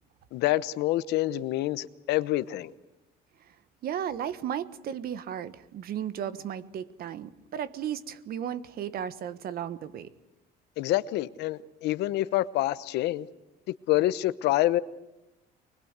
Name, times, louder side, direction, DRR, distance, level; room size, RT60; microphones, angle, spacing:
voice 1, 0.3-2.7 10.8-13.3 13.9-14.8, left 16 dB, 85° left, 1.0 m, -27 dB
voice 2, 3.8-10.1, right 9 dB, 65° right, 1.4 m, -35 dB
24.5 x 21.0 x 8.2 m
cardioid pair, 110°, 17 cm